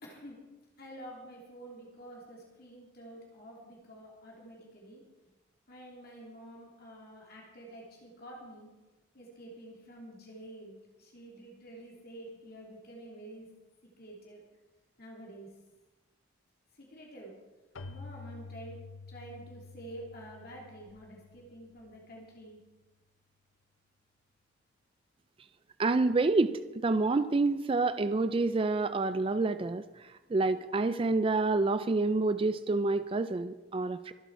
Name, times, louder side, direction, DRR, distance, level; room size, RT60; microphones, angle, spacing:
voice 1, 0.0-0.4 0.8-5.0 5.7-8.7 9.1-13.5 14.0-14.4 15.0-15.5 16.8-17.3 17.9-18.8 19.1-22.6, right 1 dB, 50° left, -3 dB, 2.8 m, -48 dB
Keyboard (musical), 17.7-22.2, left 4 dB, 85° left, 0.8 m, -49 dB
voice 2, 25.8-34.1, right 3 dB, 25° right, 12 dB, 0.3 m, -28 dB
24.0 x 8.4 x 4.6 m, 1.1 s
head